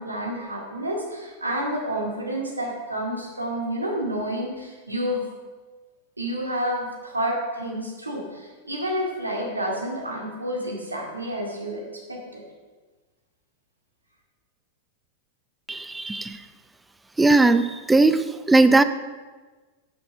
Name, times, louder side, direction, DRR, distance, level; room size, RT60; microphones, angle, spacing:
voice 1, 0.0-5.2 6.2-11.8 12.1-12.4, equal, 80° right, -1 dB, 2.3 m, -29 dB
voice 2, 15.7-16.4 17.2-18.8, right 2 dB, 10° right, 12 dB, 0.5 m, -18 dB
10.5 x 6.9 x 5.2 m, 1.3 s
figure-of-eight pair, 90°, 0 cm